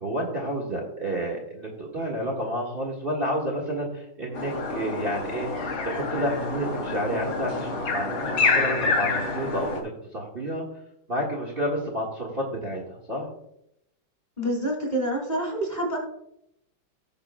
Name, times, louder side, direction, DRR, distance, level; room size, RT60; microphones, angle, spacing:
voice 1, 0.0-5.5 5.8-10.6 11.1-13.3, equal, 30° right, -2 dB, 1.9 m, -30 dB
sound 1, 4.3-9.8, left 3 dB, 55° left, 3.2 m, -27 dB
voice 2, 14.4-16.0, right 1 dB, 20° left, -1 dB, 2.7 m, -27 dB
17.0 x 6.8 x 2.3 m, 0.78 s
omnidirectional pair, 2.1 m